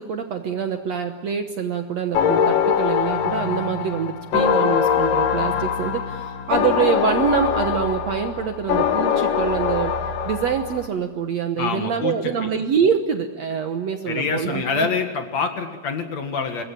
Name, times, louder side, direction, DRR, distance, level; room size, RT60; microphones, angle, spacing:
voice 1, 0.0-9.9 10.3-14.9, right 7 dB, 60° right, 6 dB, 1.9 m, -25 dB
sound 1, 2.1-10.9, left 7 dB, 70° left, 3.0 m, -22 dB
voice 2, 11.6-12.5 14.1-16.6, left 5 dB, 55° left, 5 dB, 2.9 m, -26 dB
24.5 x 21.5 x 9.0 m, 1.3 s
omnidirectional pair, 4.2 m